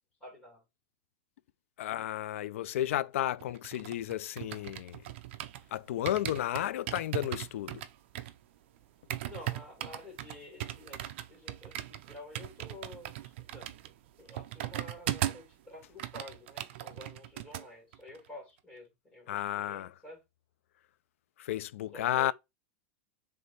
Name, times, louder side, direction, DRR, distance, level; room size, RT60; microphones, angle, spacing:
voice 1, 0.2-0.6 9.2-11.0 11.3-13.7 14.2-20.2 21.9-22.3, left 2 dB, 15° left, 2.4 m, -50 dB
voice 2, 1.8-5.0 5.7-7.8 19.3-19.9 21.4-22.3, left 13 dB, 80° left, 0.3 m, -33 dB
sound 1, 3.4-5.7 6.1-15.5 15.8-17.7 17.9-18.2, right 13 dB, 60° right, 0.5 m, -39 dB
3.4 x 3.3 x 4.0 m
supercardioid pair, 160°, 7 cm